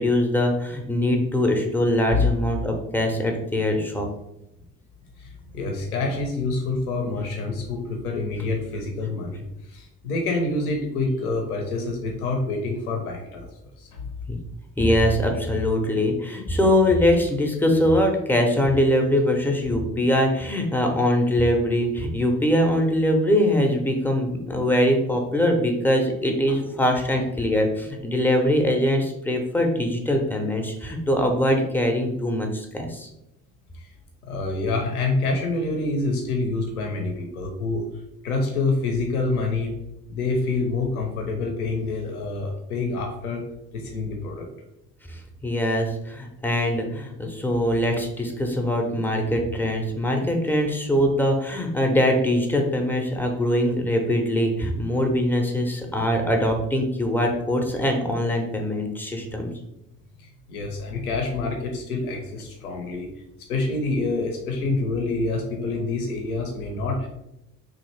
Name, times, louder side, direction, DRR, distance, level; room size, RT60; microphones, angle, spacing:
voice 1, 0.0-4.1 14.3-14.4 14.8-33.1 45.1-59.5, left 1 dB, 5° left, 2 dB, 0.4 m, -22 dB
voice 2, 5.2-13.5 13.8-14.0 26.5-26.6 27.1-27.2 33.7-33.9 34.3-37.9 38.2-39.7 40.1-43.4 43.7-44.5 60.2-63.1 63.5-67.1, left 3 dB, 80° left, 2 dB, 0.5 m, -27 dB
3.1 x 2.4 x 3.0 m, 0.86 s
figure-of-eight pair, 50°, 44 cm